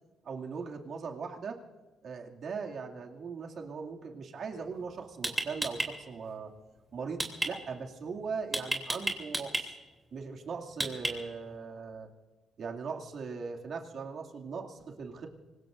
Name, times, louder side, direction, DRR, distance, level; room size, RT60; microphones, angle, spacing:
voice 1, 0.2-1.6 2.0-6.5 6.9-9.8 10.1-12.1 12.6-15.3, right 5 dB, 60° right, 1 dB, 2.4 m, -39 dB
sound 1, 4.6-4.8 5.2-5.9 7.2-7.5 8.5-9.6 10.8-11.4, right 1 dB, 15° right, 3.1 m, -31 dB
25.5 x 20.5 x 2.6 m, 1.3 s
cardioid pair, 90°, 0 cm